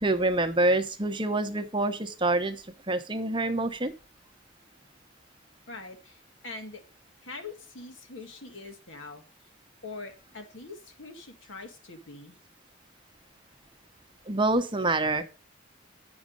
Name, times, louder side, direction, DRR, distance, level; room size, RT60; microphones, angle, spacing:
voice 1, 0.0-2.6 2.9-3.9 14.3-15.2, right 2 dB, 25° right, 8 dB, 0.9 m, -26 dB
voice 2, 5.7-6.8 7.2-9.2 9.8-12.4, left 3 dB, 75° left, 5 dB, 2.1 m, -43 dB
9.5 x 6.3 x 5.3 m, 0.33 s
head